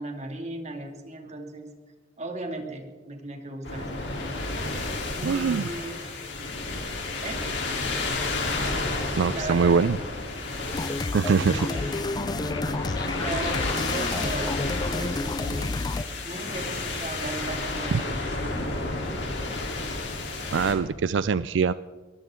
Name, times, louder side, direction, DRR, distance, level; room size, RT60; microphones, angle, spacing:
voice 1, 0.0-1.7 2.2-4.3 5.2-5.9 7.2-7.4 9.2-9.7 11.6-12.0 12.5-12.8 13.1-18.7, right 2 dB, 40° right, 3 dB, 2.5 m, -37 dB
sound 1, 3.6-20.7, left 2 dB, 70° left, 3.6 m, -31 dB
voice 2, 5.2-5.6 8.6-8.8 9.2-10.0 11.1-11.7 20.5-21.7, right 5 dB, 80° right, 16 dB, 0.4 m, -23 dB
sound 2, 10.7-16.0, left 3 dB, 20° left, 0.3 m, -30 dB
22.0 x 14.5 x 3.8 m, 1.4 s
head